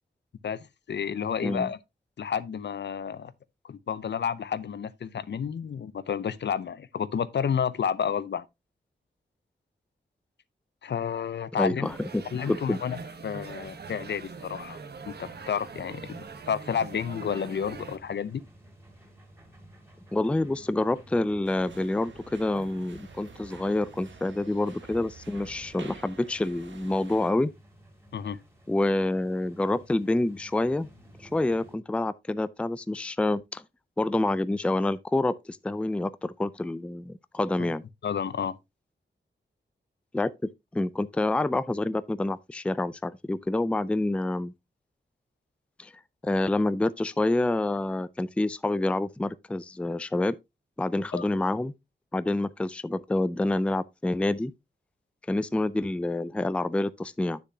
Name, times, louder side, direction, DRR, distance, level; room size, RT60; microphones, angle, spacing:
voice 1, 0.9-1.8 2.2-3.3 3.6-8.4 10.8-11.9 12.3-14.8 15.1-18.5 28.1-28.4 37.6-37.7 38.0-38.6 51.1-51.3, left 7 dB, 65° left, 0.6 m, -31 dB
voice 2, 11.6-12.8 20.1-27.5 28.7-30.9 31.2-33.6 34.0-37.8 40.1-40.3 40.7-44.5 45.8-45.9 46.2-50.4 50.8-51.7 52.1-54.5 55.3-57.4, left 2 dB, 5° left, 0.4 m, -27 dB
sound 1, 11.8-18.0, right 5 dB, 60° right, 1.1 m, -43 dB
sound 2, 15.1-31.8, equal, 15° right, 2.8 m, -54 dB
sound 3, 21.4-27.3, right 4 dB, 85° right, 1.5 m, -49 dB
9.8 x 6.7 x 2.7 m
wide cardioid pair, 120°, 19 cm